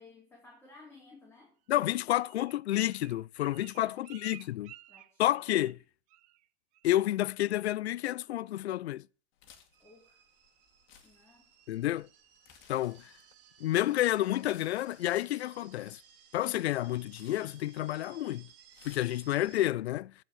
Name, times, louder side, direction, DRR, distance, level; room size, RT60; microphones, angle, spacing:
voice 1, 0.0-1.6 3.7-4.1 4.4-4.5 4.9-5.5 9.8-10.2 11.0-11.5, left 3 dB, 5° left, 3.7 m, -57 dB
voice 2, 1.7-4.7 5.2-5.8 6.8-9.1 11.7-12.1 12.7-13.1 13.6-16.0 16.3-18.5 18.8-20.1, left 14 dB, 75° left, 0.5 m, -30 dB
Bird, 1.8-5.8 6.1-6.5 6.7-7.1 7.4-7.8 8.2-8.3, right 15 dB, 25° right, 0.4 m, -55 dB
sound 1, 9.3-19.7, left 8 dB, 35° left, 2.2 m, -62 dB
sound 2, 9.7-19.6, right 9 dB, 55° right, 2.4 m, -60 dB
14.5 x 5.0 x 7.7 m
hypercardioid pair, 115°, 33 cm